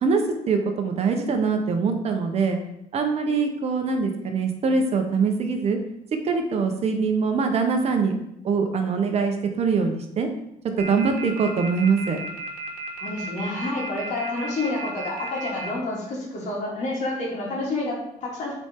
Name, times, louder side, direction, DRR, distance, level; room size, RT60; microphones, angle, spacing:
voice 1, 0.0-2.6 2.9-5.8 6.2-8.1 8.4-10.3 10.8-12.2, right 5 dB, 50° right, 5 dB, 1.0 m, -23 dB
sound 1, 10.8-15.7, right 4 dB, 75° right, 1.4 m, -34 dB
voice 2, 13.0-18.5, left 2 dB, 60° left, -3 dB, 2.6 m, -29 dB
8.0 x 4.4 x 3.7 m, 0.79 s
cardioid pair, 115°, 14 cm